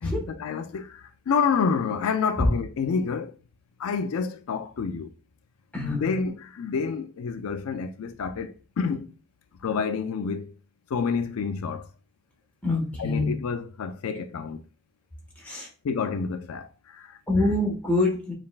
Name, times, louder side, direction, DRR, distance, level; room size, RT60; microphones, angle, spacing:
voice 1, 0.0-3.4 3.8-5.1 5.8-9.1 9.6-10.5 10.9-11.9 13.0-14.6 15.8-17.2, left 5 dB, 70° left, 0.4 m, -29 dB
voice 2, 5.7-6.1 12.6-13.3 15.4-15.7 17.3-18.3, left 2 dB, 5° left, 1.4 m, -25 dB
5.2 x 3.4 x 2.4 m
head